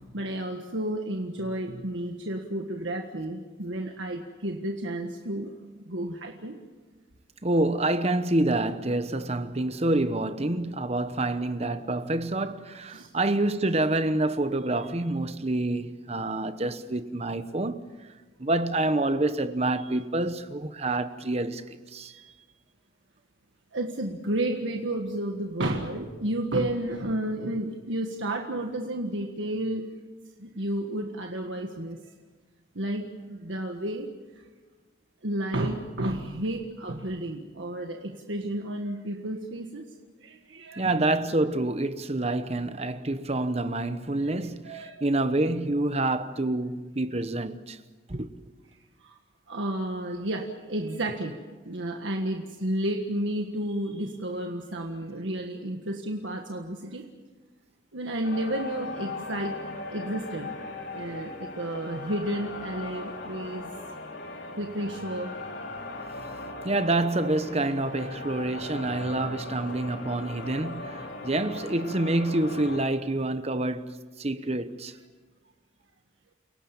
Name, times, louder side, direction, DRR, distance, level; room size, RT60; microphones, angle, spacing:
voice 1, 0.1-5.5 5.8-6.6 12.9-13.1 23.7-29.9 30.4-32.0 32.7-34.1 35.2-39.8 40.2-41.1 44.6-45.0 49.0-49.2 49.5-51.4 51.6-57.1 57.9-59.6 59.9-60.6 60.9-63.7 64.6-65.3, right 1 dB, 85° right, 1.7 m, -31 dB
voice 2, 7.4-17.8 18.4-21.6 21.9-22.2 40.8-47.8 48.1-48.3 66.6-74.9, right 2 dB, 35° right, 1.0 m, -27 dB
sound 1, 58.2-72.9, left 2 dB, 80° left, 3.6 m, -39 dB
29.5 x 17.5 x 7.2 m
head